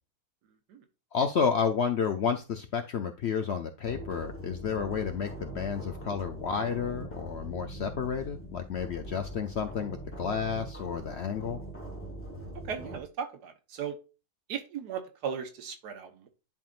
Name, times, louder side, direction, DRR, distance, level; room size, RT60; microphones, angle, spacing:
voice 1, 1.1-11.6, left 6 dB, 65° left, 7 dB, 0.6 m, -31 dB
sound 1, 3.8-13.0, right 1 dB, 10° left, 1.2 m, -42 dB
voice 2, 12.5-14.0 14.5-16.3, right 7 dB, 90° right, 6 dB, 1.6 m, -37 dB
10.5 x 3.7 x 2.4 m, 0.31 s
omnidirectional pair, 1.7 m